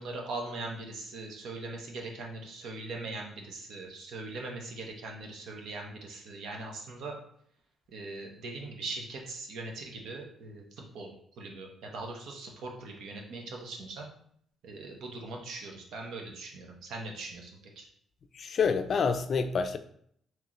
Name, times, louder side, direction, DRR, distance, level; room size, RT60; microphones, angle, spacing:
voice 1, 0.0-7.2 7.9-10.6 10.9-14.1 14.6-17.5 17.8-17.9, right 2 dB, 80° right, 1 dB, 0.8 m, -40 dB
voice 2, 18.3-19.8, left 5 dB, 50° left, 9 dB, 0.4 m, -27 dB
3.7 x 3.0 x 3.0 m, 0.66 s
cardioid pair, 90°, 0 cm